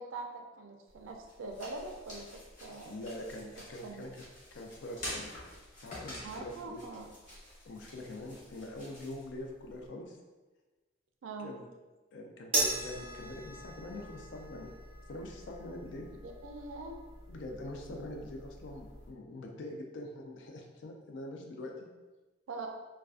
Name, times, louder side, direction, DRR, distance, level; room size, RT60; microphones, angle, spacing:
voice 1, 0.0-2.3 2.6-3.1 3.8-4.0 6.2-7.1 11.2-11.5 16.2-16.9 22.5-22.7, right 3 dB, 90° right, 3 dB, 0.4 m, -43 dB
sound 1, 0.9-9.9, left 1 dB, 40° left, 0.8 m, -48 dB
voice 2, 2.8-4.1 4.5-5.3 5.8-6.8 7.6-10.2 11.4-11.7 12.1-14.8 15.1-16.1 17.3-21.9, left 1 dB, 65° left, 2 dB, 0.4 m, -44 dB
sound 2, 12.5-19.1, right 2 dB, 30° right, 0.6 m, -39 dB
2.4 x 2.2 x 2.3 m, 1.2 s
head